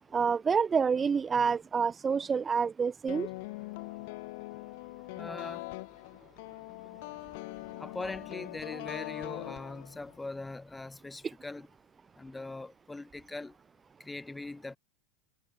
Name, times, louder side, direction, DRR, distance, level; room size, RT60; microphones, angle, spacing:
voice 1, 0.1-3.3, right 6 dB, 20° right, 0.7 m, -28 dB
sound 1, 3.1-10.2, left 24 dB, 60° left, 5.2 m, -42 dB
voice 2, 5.2-5.6 7.8-11.7 12.2-13.5 14.0-14.8, left 2 dB, 10° left, 5.0 m, -41 dB
supercardioid pair, 135°, 0 cm